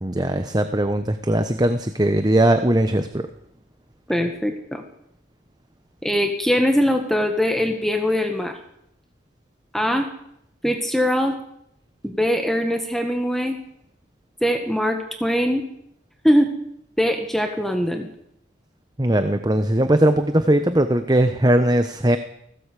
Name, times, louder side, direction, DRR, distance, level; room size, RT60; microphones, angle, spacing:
voice 1, 0.0-3.3 19.0-22.2, right 1 dB, 20° right, 9 dB, 1.0 m, -19 dB
voice 2, 4.1-4.8 6.0-8.5 9.7-10.1 10.6-11.3 12.0-13.6 14.4-15.6 16.2-16.5 17.0-18.1, equal, ahead, 4 dB, 1.7 m, -21 dB
19.5 x 16.5 x 8.4 m, 0.77 s
head